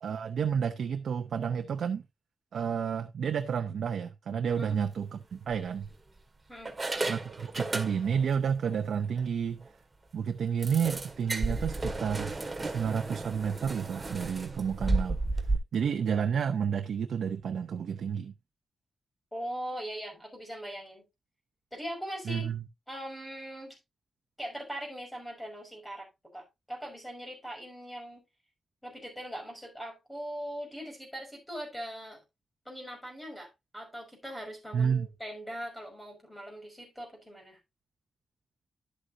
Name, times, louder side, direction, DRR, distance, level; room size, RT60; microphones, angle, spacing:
voice 1, 0.0-2.0 2.5-5.9 7.1-9.7 10.1-12.4 12.6-15.2 15.7-18.3 22.2-22.6 34.7-35.1, right 7 dB, 80° right, 0.8 m, -30 dB
sound 1, 4.6-4.8 5.5-6.2 6.7-8.3 8.6-8.8 9.2-9.3 9.6-9.7 10.6-15.6, right 2 dB, 20° right, 1.9 m, -33 dB
voice 2, 19.3-21.0 21.7-22.5 22.9-23.8 24.4-28.2 28.8-32.2 32.7-37.6, equal, 5° left, 5.8 m, -41 dB
11.5 x 8.0 x 2.7 m
wide cardioid pair, 130°, 0 cm